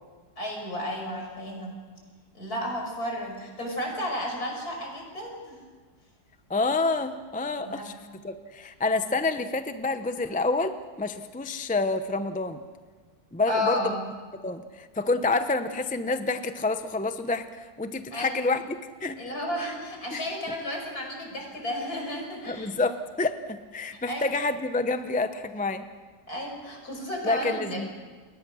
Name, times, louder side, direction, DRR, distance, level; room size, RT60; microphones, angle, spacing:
voice 1, 0.4-1.7 2.3-5.6 7.6-7.9 13.5-14.0 18.1-18.4 19.2-22.7 23.8-24.2 26.3-27.8, left 1 dB, 55° left, 1 dB, 6.0 m, -32 dB
voice 2, 6.5-7.9 8.2-12.6 13.3-14.0 14.4-19.2 20.1-20.2 22.5-25.9 27.2-27.9, left 3 dB, 10° left, 9 dB, 0.4 m, -28 dB
29.5 x 21.5 x 6.4 m, 1.5 s
omnidirectional pair, 1.9 m